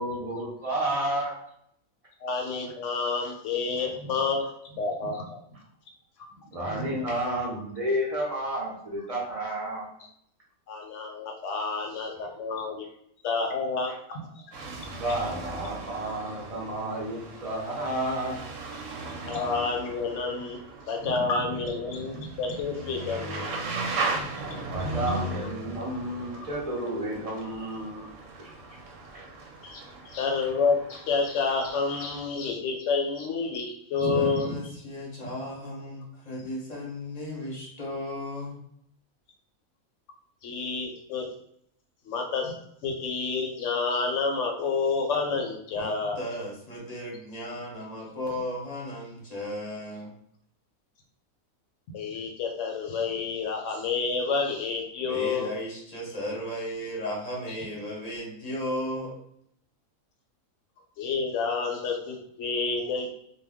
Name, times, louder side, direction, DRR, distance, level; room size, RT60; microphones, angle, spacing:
voice 1, 0.0-1.3 6.5-9.8 15.0-18.4 24.7-28.1 28.4-28.5 29.1-29.2, right 1 dB, 50° right, -4 dB, 0.4 m, -31 dB
voice 2, 2.2-5.4 6.6-6.9 10.7-12.9 13.2-14.4 19.2-20.6 20.9-23.6 26.3-26.5 29.6-29.8 30.1-34.6 40.4-41.3 42.1-42.5 42.8-46.2 51.9-55.5 61.0-63.1, left 4 dB, 65° left, 2 dB, 0.8 m, -29 dB
sound 1, 14.5-32.2, right 3 dB, 70° right, 0.9 m, -37 dB
voice 3, 34.1-38.6 45.7-50.1 55.0-59.1, left 1 dB, 35° left, -4 dB, 0.7 m, -35 dB
2.3 x 2.1 x 3.4 m, 0.70 s
omnidirectional pair, 1.4 m